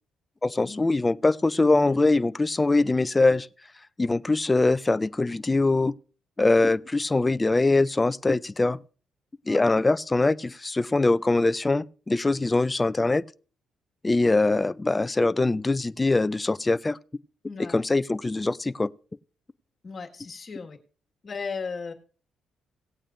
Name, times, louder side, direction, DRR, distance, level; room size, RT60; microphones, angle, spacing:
voice 1, 0.4-3.5 4.0-5.9 6.4-8.8 9.5-13.2 14.0-17.0 17.7-18.9, left 2 dB, 20° left, 0.4 m, -23 dB
voice 2, 17.4-17.8 19.8-20.8 21.2-21.9, left 5 dB, 40° left, 1.7 m, -36 dB
18.0 x 8.8 x 2.5 m
cardioid pair, 90°, 0 cm